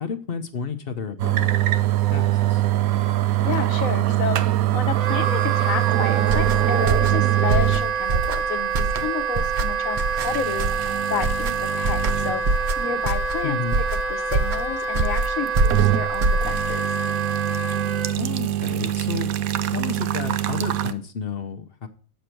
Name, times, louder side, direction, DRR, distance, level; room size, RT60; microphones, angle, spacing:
voice 1, 0.0-1.5 2.1-2.6 13.4-13.8 18.2-19.3 19.7-21.9, left 6 dB, 50° left, 8 dB, 0.8 m, -31 dB
sound 1, 1.2-7.9 8.2-8.3 9.1-9.2 10.2-12.4 12.9-13.0 15.1-16.1 16.4-20.9, right 14 dB, 90° right, 1.1 m, -23 dB
voice 2, 3.4-4.4 4.7-13.6 13.9-16.8, left 7 dB, 75° left, 11 dB, 1.3 m, -31 dB
Wind instrument woodwind instrument, 4.9-18.1, right 5 dB, 65° right, 1.4 m, -27 dB
sound 2, 6.2-16.8, right 3 dB, 50° right, 0.6 m, -25 dB
7.9 x 6.6 x 4.4 m, 0.43 s
omnidirectional pair, 1.4 m